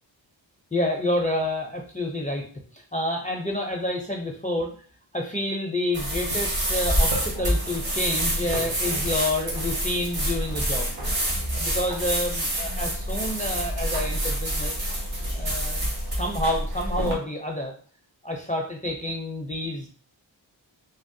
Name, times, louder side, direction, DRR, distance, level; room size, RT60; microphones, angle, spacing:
voice 1, 0.7-2.5 2.7-4.8 5.1-11.0 11.5-14.7 15.3-15.9 16.1-17.7 18.2-19.9, left 1 dB, 15° left, 0 dB, 0.4 m, -28 dB
sound 1, 5.9-17.1, right 1 dB, 55° right, 1.3 m, -27 dB
3.4 x 2.1 x 2.6 m, 0.43 s
wide cardioid pair, 70°, 45 cm